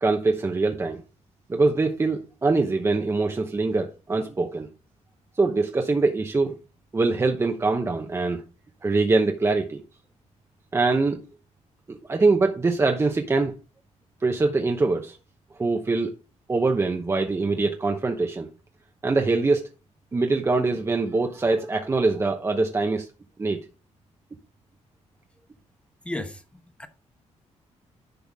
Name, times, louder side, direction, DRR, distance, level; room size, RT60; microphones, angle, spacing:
voice 1, 0.0-1.0 1.5-4.7 5.4-6.6 6.9-8.4 8.8-9.8 10.7-11.2 11.9-13.5 14.2-15.2 15.6-16.1 16.5-18.5 19.0-19.7 20.1-23.1 23.4-23.6, right 3 dB, 20° right, 0.9 m, -23 dB
voice 2, 26.0-26.9, left 1 dB, 10° left, 1.0 m, -35 dB
10.5 x 5.8 x 3.5 m
cardioid pair, 140°, 12 cm